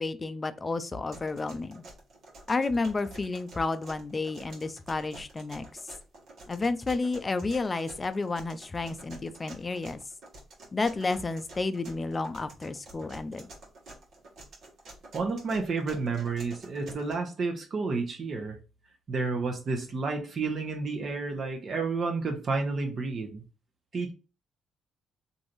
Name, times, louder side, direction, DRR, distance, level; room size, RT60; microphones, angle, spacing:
voice 1, 0.0-1.8 2.5-5.7 6.5-10.0 10.7-13.5, left 3 dB, 30° left, 0.4 m, -31 dB
sound 1, 1.1-17.1, right 2 dB, 70° right, 1.2 m, -49 dB
voice 2, 15.1-18.6 19.1-23.4 23.9-24.1, right 4 dB, 50° right, 0.9 m, -30 dB
3.2 x 2.6 x 2.6 m
cardioid pair, 90°, 0 cm